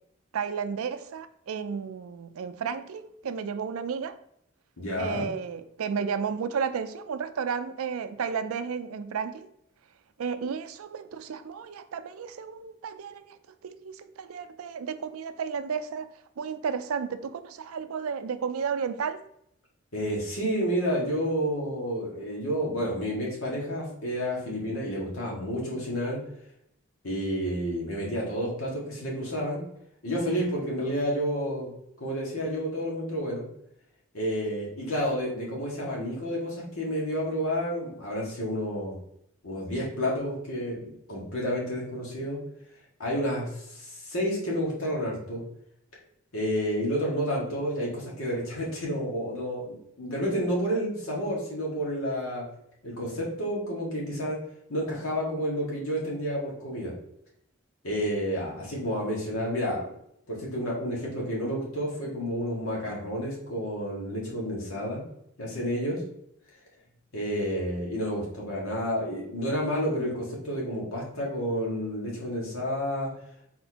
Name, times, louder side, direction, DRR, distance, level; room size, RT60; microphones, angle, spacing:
voice 1, 0.3-4.2 5.0-9.5 10.2-13.4 13.6-16.1 16.4-19.2, right 6 dB, 85° right, 11 dB, 0.4 m, -33 dB
voice 2, 4.8-5.3 19.9-26.2 27.0-29.6 30.0-31.7 32.0-33.4 34.1-39.0 39.4-42.4 43.0-45.4 46.3-52.4 52.8-54.4 54.7-56.9 57.8-59.9 60.3-65.0 65.4-66.0 67.1-73.1, equal, 80° left, -4 dB, 1.8 m, -30 dB
4.2 x 4.2 x 2.8 m, 0.73 s
head